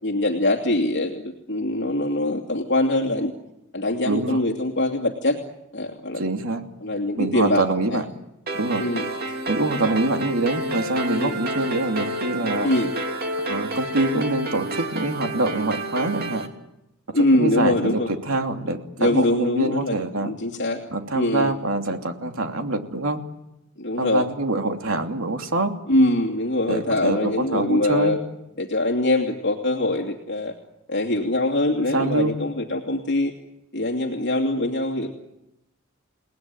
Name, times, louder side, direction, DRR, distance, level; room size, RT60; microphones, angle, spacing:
voice 1, 0.0-3.3 3.7-5.4 5.7-6.2 6.8-7.6 7.9-8.0 8.8-9.1 11.2-11.4 12.6-12.9 17.1-18.1 19.0-20.0 20.2-20.8 21.1-21.5 23.8-24.2 25.9-28.2 28.6-30.6 30.9-33.3 33.7-35.1, left 1 dB, 55° left, 1 dB, 2.7 m, -23 dB
voice 2, 4.0-4.4 6.1-6.6 7.2-8.2 8.5-8.9 9.5-12.7 13.5-16.5 17.4-20.3 20.9-23.2 24.0-25.7 26.7-28.2 31.9-32.3, right 2 dB, 75° right, 4 dB, 2.9 m, -25 dB
sound 1, 8.5-16.5, right 1 dB, 45° right, 3.2 m, -29 dB
30.0 x 19.5 x 9.5 m, 0.89 s
head